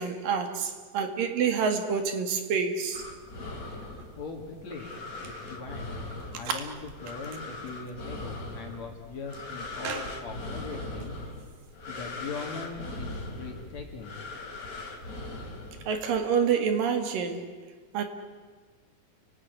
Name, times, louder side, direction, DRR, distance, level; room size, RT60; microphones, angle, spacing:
voice 1, 0.0-3.0 6.5-6.7 9.8-10.1 15.9-17.5 17.9-18.0, right 6 dB, 75° right, 7 dB, 3.6 m, -27 dB
sound 1, 2.9-16.2, left 2 dB, 25° left, 3.5 m, -40 dB
voice 2, 4.2-4.9 5.3-5.9 6.3-11.1 11.9-14.2, left 4 dB, 55° left, 1 dB, 3.3 m, -40 dB
29.5 x 18.5 x 9.6 m, 1.4 s
omnidirectional pair, 4.0 m